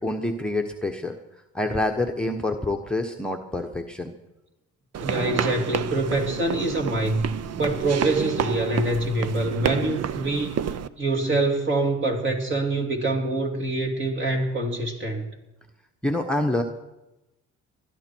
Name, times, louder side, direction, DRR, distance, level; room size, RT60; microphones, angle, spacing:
voice 1, 0.0-1.2 1.5-4.1 16.0-16.6, left 1 dB, 5° left, 2 dB, 1.1 m, -26 dB
sound 1, 4.9-10.9, right 9 dB, 55° right, 0.7 m, -29 dB
voice 2, 5.0-15.2, right 2 dB, 40° right, 3 dB, 3.0 m, -25 dB
20.5 x 12.5 x 4.6 m, 0.98 s
cardioid pair, 90°, 30 cm